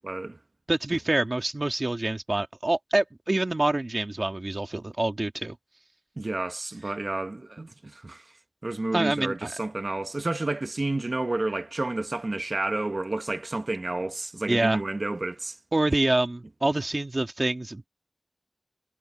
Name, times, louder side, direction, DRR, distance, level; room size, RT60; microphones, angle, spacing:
voice 1, 0.0-0.4 6.2-8.3 8.6-15.6, right 2 dB, 80° right, 1.0 m, -30 dB
voice 2, 0.7-5.6 7.6-7.7 8.9-9.5 14.5-14.8 15.7-17.9, right 2 dB, 65° right, 1.8 m, -26 dB
wide cardioid pair, 40°, 0 cm